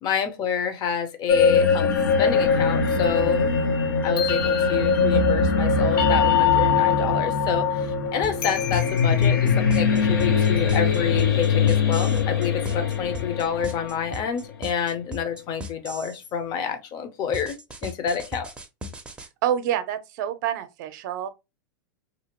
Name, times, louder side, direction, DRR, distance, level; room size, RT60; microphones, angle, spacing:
voice 1, 0.0-1.9 2.2-3.5 4.0-17.5 17.8-18.5, left 7 dB, 35° left, 0.7 m, -28 dB
sound 1, 1.3-14.3, left 5 dB, 80° left, 1.0 m, -21 dB
sound 2, 8.2-16.2 17.3-19.3, equal, 10° right, 0.6 m, -37 dB
voice 2, 19.4-21.3, right 10 dB, 60° right, 0.6 m, -27 dB
2.8 x 2.5 x 2.9 m
hypercardioid pair, 125°, 12 cm